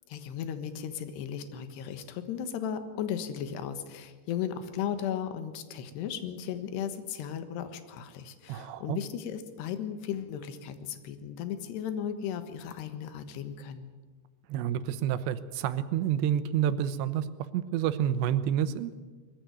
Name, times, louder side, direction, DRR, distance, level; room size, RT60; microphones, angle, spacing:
voice 1, 0.1-13.9, left 9 dB, 75° left, 9 dB, 3.4 m, -36 dB
voice 2, 8.5-9.0 14.5-17.3 17.5-18.9, right 10 dB, 90° right, 13 dB, 3.1 m, -29 dB
21.5 x 15.0 x 9.4 m, 1.4 s
omnidirectional pair, 5.0 m